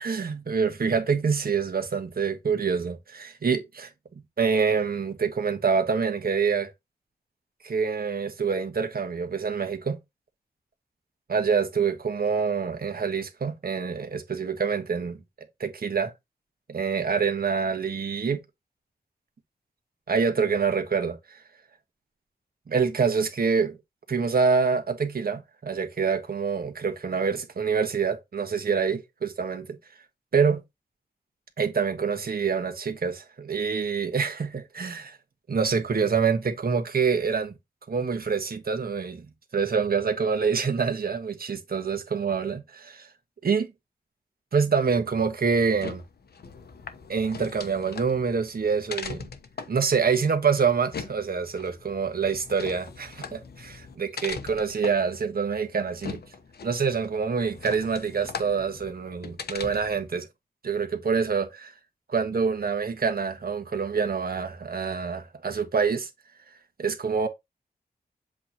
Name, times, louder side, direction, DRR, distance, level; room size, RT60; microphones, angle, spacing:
voice 1, 0.0-3.9 4.4-6.7 7.6-10.0 11.3-15.2 15.6-16.1 16.7-18.4 20.1-21.2 22.7-23.8 24.1-29.7 30.3-30.6 31.6-35.2 35.5-37.5 37.9-39.3 39.5-42.6 42.9-43.1 43.4-43.7 44.5-46.0 47.1-49.2 49.7-56.2 56.6-60.3 60.6-61.7 62.1-66.1 66.8-67.3, right 5 dB, 60° right, 1.5 m, -26 dB
sound 1, 45.6-60.1, left 5 dB, 70° left, 0.9 m, -40 dB
7.6 x 4.4 x 2.9 m
wide cardioid pair, 85°, 17 cm